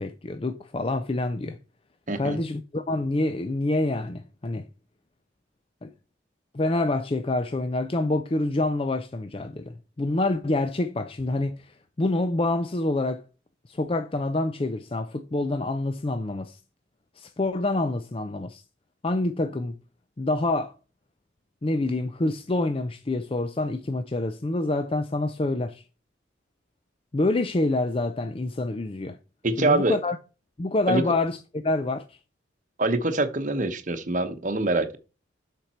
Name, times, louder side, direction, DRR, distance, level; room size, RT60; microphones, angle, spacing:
voice 1, 0.0-1.6 2.2-4.7 5.8-5.9 6.5-13.2 13.7-16.6 17.2-18.6 19.0-19.7 20.2-20.7 21.6-25.8 27.1-29.2 29.6-30.2 30.6-32.2, left 2 dB, 30° left, 0.4 m, -27 dB
voice 2, 2.1-2.4 29.4-30.0 30.9-31.0 32.8-35.0, right 2 dB, 40° right, 0.9 m, -24 dB
7.4 x 5.2 x 4.3 m
head